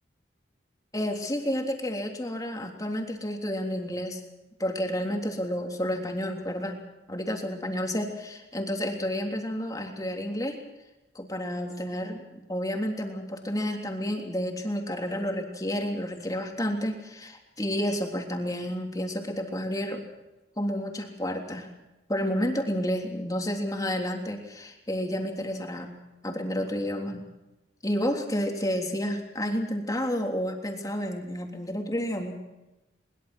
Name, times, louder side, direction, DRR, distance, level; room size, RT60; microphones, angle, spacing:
voice 1, 0.9-4.2 4.6-6.8 7.1-10.6 11.1-20.1 20.6-21.7 22.1-25.9 26.2-27.3 27.8-32.4, equal, 20° left, 2 dB, 3.4 m, -30 dB
22.0 x 21.5 x 6.3 m, 1.0 s
head